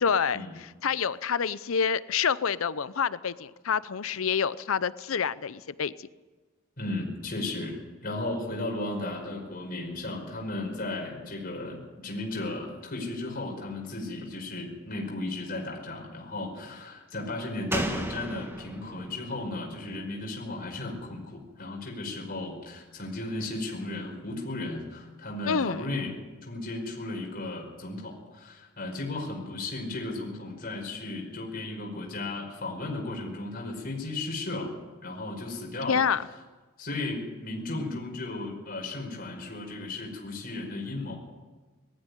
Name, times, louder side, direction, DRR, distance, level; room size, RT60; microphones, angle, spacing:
voice 1, 0.0-6.1 25.5-25.9 35.9-36.3, left 6 dB, 70° left, 17 dB, 0.6 m, -27 dB
voice 2, 6.8-7.8 8.0-21.3 21.6-26.2 26.5-34.7 35.0-36.0 36.8-41.2, left 2 dB, 40° left, -1 dB, 5.4 m, -35 dB
Slam, 17.7-21.2 21.5-21.6, right 1 dB, 10° right, 1.4 m, -36 dB
20.0 x 14.5 x 9.8 m, 1.3 s
head